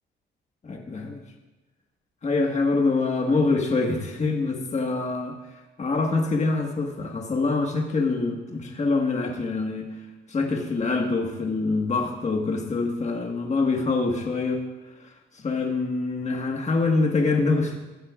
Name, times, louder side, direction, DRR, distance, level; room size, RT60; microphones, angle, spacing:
voice 1, 0.6-1.2 2.2-5.4 5.8-9.9 10.3-14.6 15.3-17.8, left 3 dB, 35° left, 1 dB, 1.7 m, -25 dB
16.5 x 12.5 x 2.5 m, 1.1 s
cardioid pair, 90°, 20 cm